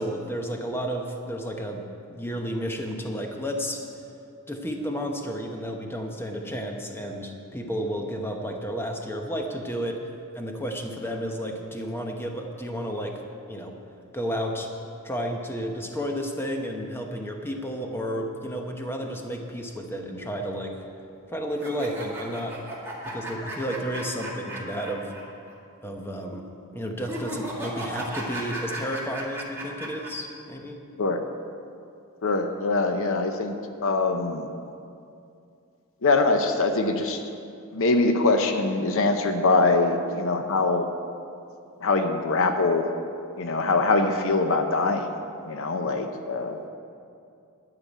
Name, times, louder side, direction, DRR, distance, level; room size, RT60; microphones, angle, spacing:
voice 1, 0.0-3.8 4.5-10.0 10.3-13.2 13.5-13.8 14.1-14.7 15.0-20.8 21.3-22.6 23.0-25.1 25.8-26.5 26.7-30.8, equal, 10° left, 2 dB, 1.0 m, -32 dB
sound 1, 21.5-25.2 25.5-25.6 27.0-30.1, right 1 dB, 10° right, 2.1 m, -35 dB
voice 2, 32.2-33.6 33.8-34.5 36.0-37.2 37.7-40.9 41.8-42.9 43.4-45.1 45.5-46.6, left 3 dB, 65° left, 6 dB, 0.7 m, -23 dB
12.0 x 5.8 x 9.1 m, 2.5 s
head